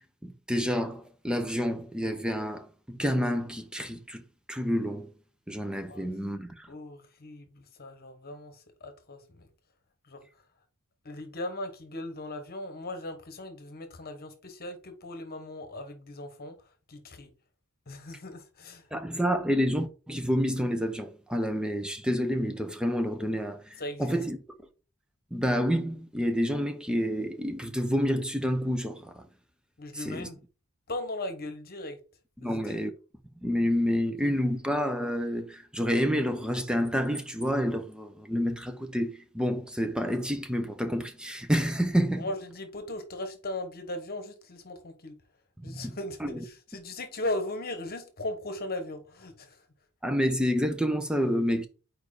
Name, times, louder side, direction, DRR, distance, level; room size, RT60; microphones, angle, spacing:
voice 1, 0.2-4.2 4.5-5.1 5.5-6.7 18.9-24.4 25.3-29.3 29.9-30.3 32.4-32.9 33.4-42.3 45.6-46.4 50.0-51.7, equal, 5° right, 0.7 m, -29 dB
voice 2, 6.7-8.5 8.8-9.5 10.1-10.2 11.0-16.5 16.9-17.3 17.9-18.8 23.8-24.2 29.8-30.4 30.9-32.0 32.4-32.8 42.2-45.1 45.6-46.2 46.7-49.6, left 1 dB, 45° left, 1.2 m, -38 dB
4.7 x 4.6 x 4.9 m
head